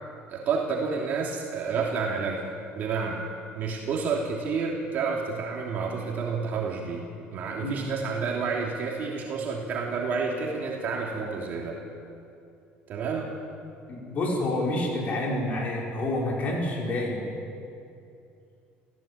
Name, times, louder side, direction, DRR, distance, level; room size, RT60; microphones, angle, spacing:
voice 1, 0.3-3.2 3.5-11.8 12.9-13.3, right 5 dB, 45° right, -2 dB, 3.1 m, -30 dB
voice 2, 13.9-17.3, left 1 dB, 35° left, -2 dB, 6.1 m, -28 dB
28.5 x 16.5 x 8.8 m, 2.6 s
cardioid pair, 160°, 4 cm